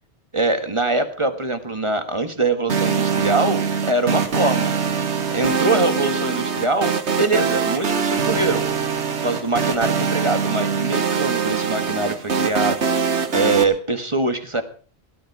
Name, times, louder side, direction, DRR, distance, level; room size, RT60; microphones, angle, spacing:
voice 1, 0.3-4.7 5.3-8.7 9.2-12.8 13.3-14.6, right 2 dB, 25° right, 8 dB, 1.6 m, -23 dB
sound 1, 2.7-13.6, right 6 dB, 85° right, 1.7 m, -23 dB
17.5 x 13.0 x 4.8 m, 0.41 s
omnidirectional pair, 1.1 m